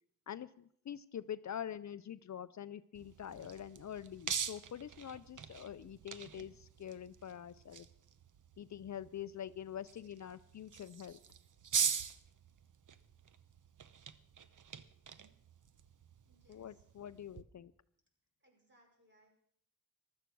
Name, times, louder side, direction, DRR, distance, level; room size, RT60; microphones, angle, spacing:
voice 1, 0.3-7.9 8.6-11.2 16.5-17.7, left 9 dB, 50° left, 14 dB, 0.5 m, -45 dB
sound 1, 3.0-17.4, right 7 dB, 60° right, 0.9 m, -43 dB
voice 2, 16.3-16.8 18.4-19.3, right 1 dB, 30° right, 1 dB, 5.1 m, -69 dB
15.5 x 12.5 x 6.1 m, 0.66 s
cardioid pair, 85°, 35 cm